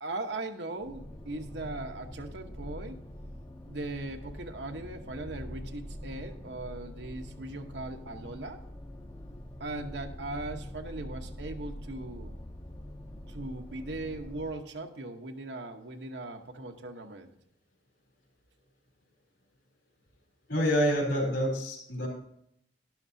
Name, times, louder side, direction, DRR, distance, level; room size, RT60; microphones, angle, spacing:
voice 1, 0.0-3.0 3.7-8.6 9.6-12.3 13.3-17.3, right 2 dB, 75° right, 5 dB, 1.1 m, -39 dB
sound 1, 0.8-14.5, equal, 20° left, 0.7 m, -44 dB
voice 2, 20.5-22.1, equal, 70° left, 1 dB, 4.0 m, -27 dB
12.0 x 11.5 x 2.7 m, 0.72 s
head